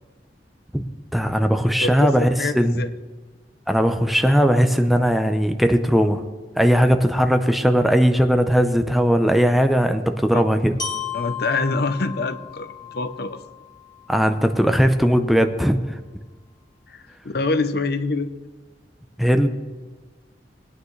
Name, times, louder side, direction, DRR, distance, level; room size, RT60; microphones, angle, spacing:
voice 1, 1.1-2.3 2.5-2.8 3.7-6.2 6.6-10.8 14.1-16.0 19.2-19.5, equal, ahead, 7 dB, 0.6 m, -18 dB
voice 2, 1.8-2.9 10.3-10.4 11.1-13.4 16.9-18.3, left 3 dB, 60° left, 11 dB, 0.7 m, -25 dB
Glockenspiel, 10.8-14.8, left 7 dB, 25° left, 2.1 m, -35 dB
20.0 x 9.4 x 3.2 m, 1.3 s
head